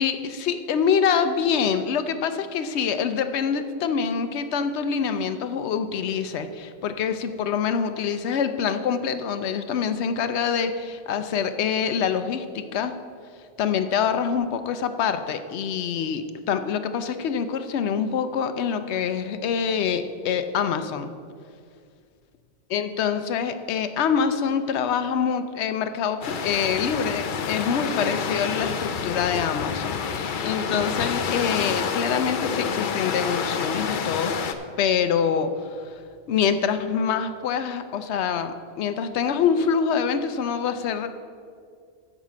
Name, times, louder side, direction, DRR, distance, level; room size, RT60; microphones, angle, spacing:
voice 1, 0.0-12.9 13.6-21.1 22.7-36.0 36.3-41.1, left 7 dB, 80° left, 9 dB, 0.9 m, -25 dB
sound 1, 26.2-34.5, left 6 dB, 55° left, 0.7 m, -28 dB
10.5 x 5.0 x 7.4 m, 2.2 s
omnidirectional pair, 1.1 m